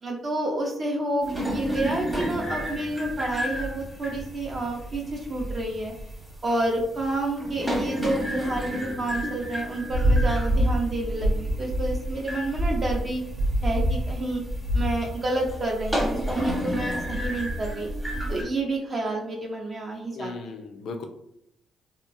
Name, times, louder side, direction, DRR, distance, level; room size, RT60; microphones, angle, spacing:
voice 1, 0.0-5.9 6.4-13.2 13.6-14.4 14.7-17.9 18.3-20.3, right 2 dB, 40° right, -1 dB, 0.5 m, -29 dB
sound 1, 1.2-18.4, equal, 15° right, 0.9 m, -32 dB
sound 2, 9.9-15.0, equal, 75° right, 0.7 m, -24 dB
voice 2, 20.1-21.0, left 4 dB, 70° left, 5 dB, 0.4 m, -36 dB
2.8 x 2.3 x 2.5 m, 0.77 s
cardioid pair, 90°, 0 cm